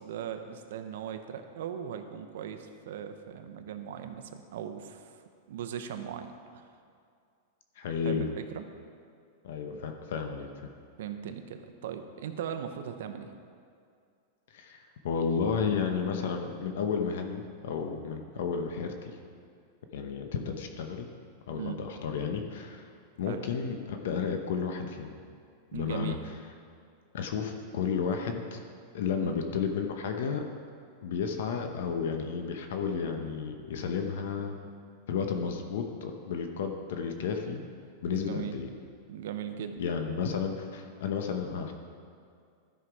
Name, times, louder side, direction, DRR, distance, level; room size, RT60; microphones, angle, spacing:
voice 1, 0.0-5.1 5.5-6.6 8.1-8.6 11.0-13.3 21.5-21.8 23.3-23.4 25.7-26.2 29.2-29.4 38.1-38.5 39.1-39.8, right 9 dB, 75° right, 7 dB, 0.8 m, -39 dB
voice 2, 7.8-8.3 9.4-10.7 14.5-19.2 19.9-21.1 21.5-22.9 23.2-25.2 25.7-26.2 27.1-28.6 28.9-30.5 31.0-34.6 35.1-37.6 38.0-38.7 39.8-41.7, left 6 dB, 75° left, 5 dB, 0.9 m, -32 dB
12.5 x 5.8 x 4.7 m, 2.3 s
supercardioid pair, 145°, 0 cm